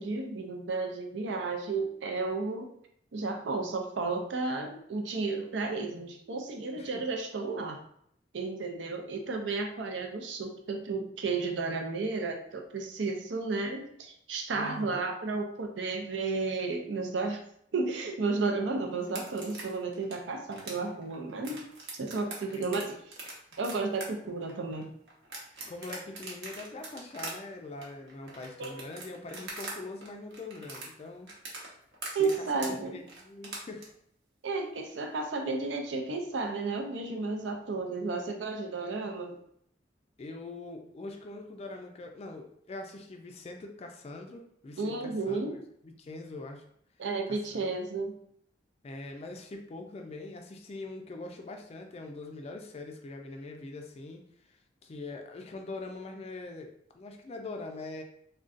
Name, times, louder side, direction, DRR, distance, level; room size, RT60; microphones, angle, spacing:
voice 1, 0.0-2.7 3.1-7.8 8.3-17.4 17.7-21.7 22.0-22.9 23.6-24.9 28.6-28.8 32.1-33.0 34.4-39.4 44.8-45.6 47.0-48.1, right 3 dB, 90° right, 4 dB, 0.5 m, -33 dB
voice 2, 14.5-15.0 22.5-22.6 25.7-31.3 32.1-33.9 40.2-46.6 47.5-47.8 48.8-58.0, left 2 dB, 35° left, 3 dB, 0.3 m, -43 dB
sound 1, 19.0-29.8 30.0-33.8, right 3 dB, 65° right, 0.8 m, -42 dB
3.7 x 2.2 x 2.4 m, 0.69 s
head